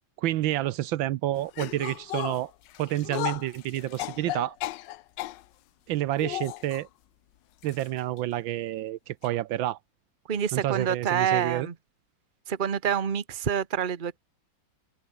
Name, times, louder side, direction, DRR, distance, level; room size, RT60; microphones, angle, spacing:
voice 1, 0.2-2.5 2.8-4.6 5.9-6.9 7.6-9.8 10.5-11.7, right 14 dB, 80° right, 1.5 m, -29 dB
sound 1, 1.5-5.4 6.2-6.8 7.6-7.9 8.2-8.3 9.2-9.3, left 15 dB, 75° left, 1.2 m, -35 dB
voice 2, 10.3-11.7 12.5-14.2, right 8 dB, 30° right, 1.1 m, -27 dB
omnidirectional pair, 2.1 m